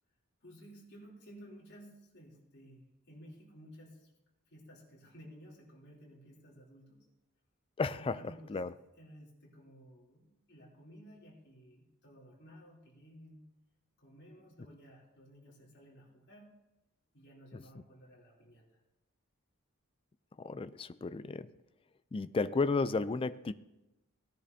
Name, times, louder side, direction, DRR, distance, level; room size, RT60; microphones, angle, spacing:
voice 1, 0.4-4.1 4.5-7.0 7.9-8.6 9.0-13.5 14.0-16.5 17.1-18.8, equal, 55° left, -3 dB, 3.1 m, -55 dB
voice 2, 7.8-8.2 8.5-8.7 17.5-17.6 20.4-21.5 22.1-23.5, left 4 dB, 25° left, 14 dB, 0.3 m, -33 dB
17.5 x 10.5 x 2.7 m, 0.97 s
head